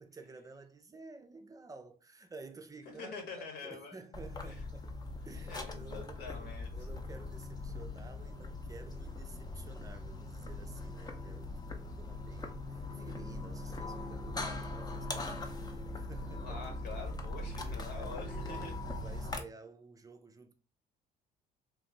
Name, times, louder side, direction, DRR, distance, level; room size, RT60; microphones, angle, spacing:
voice 1, 0.0-4.9 5.2-16.6 17.3-20.5, right 3 dB, 20° right, 0.5 m, -52 dB
voice 2, 3.0-4.0 4.4-4.6 5.5-6.7 16.4-18.7, left 4 dB, 75° left, 1.5 m, -45 dB
sound 1, 4.1-19.4, left 2 dB, 25° left, 0.7 m, -41 dB
3.5 x 2.7 x 3.2 m
cardioid pair, 110°, 17 cm